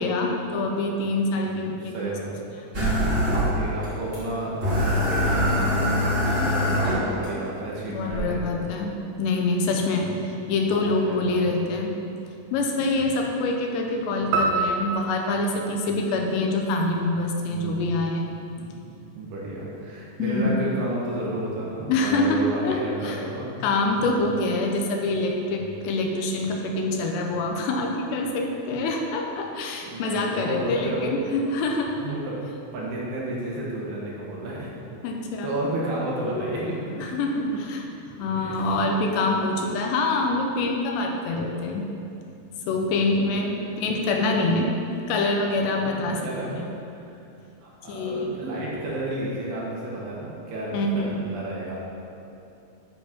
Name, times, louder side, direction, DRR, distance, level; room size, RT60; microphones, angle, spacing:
voice 1, 0.0-1.9 7.9-12.0 12.5-18.3 20.2-20.6 21.9-23.2 23.6-32.2 35.0-35.6 36.2-36.6 37.0-37.8 38.2-41.9 42.7-44.7 45.1-46.6 47.9-48.3 50.7-51.2, left 2 dB, 85° left, 2 dB, 3.0 m, -25 dB
voice 2, 1.9-2.3 3.5-8.7 9.7-10.2 10.7-10.8 11.1-11.5 12.7-13.0 17.4-18.0 18.5-23.5 29.8-31.1 32.0-34.7 35.4-36.8 37.5-37.6 38.3-38.7 42.8-43.0 43.6-43.7 46.2-46.6 47.6-51.9, right 1 dB, 70° right, -5 dB, 3.3 m, -32 dB
sound 1, 2.7-3.9 4.1-4.2 4.6-7.3 8.1-8.2, equal, 45° right, 1.0 m, -23 dB
sound 2, 14.3-16.8, right 3 dB, 90° right, 3.0 m, -28 dB
10.0 x 4.6 x 6.0 m, 2.7 s
omnidirectional pair, 5.0 m